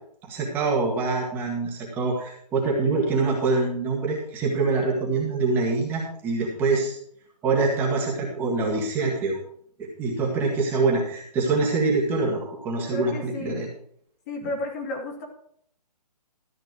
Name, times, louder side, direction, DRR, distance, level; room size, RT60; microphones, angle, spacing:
voice 1, 0.3-7.0 7.4-9.4 9.8-13.7, right 3 dB, 10° right, -3 dB, 1.8 m, -25 dB
voice 2, 12.9-13.6 14.3-15.2, left 2 dB, 25° left, 2 dB, 2.6 m, -32 dB
14.0 x 8.7 x 4.9 m, 0.65 s
hypercardioid pair, 170°, 21 cm